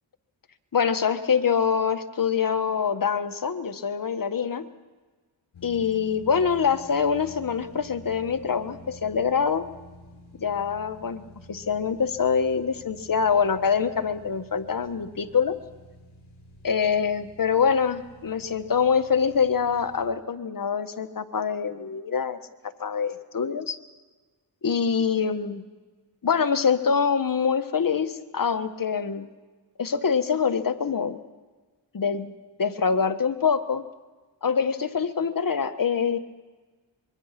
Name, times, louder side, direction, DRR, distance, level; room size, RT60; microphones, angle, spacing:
voice 1, 0.7-4.7 5.6-9.7 10.4-15.6 16.6-22.4 22.8-23.8 24.6-25.6 26.2-29.3 29.8-31.2 31.9-32.3 32.6-33.8 34.4-36.2, left 6 dB, 45° left, 10 dB, 1.5 m, -25 dB
sound 1, 5.5-20.1, left 1 dB, 75° left, 7.9 m, -49 dB
24.5 x 22.5 x 6.0 m, 1.3 s
cardioid pair, 60°, 46 cm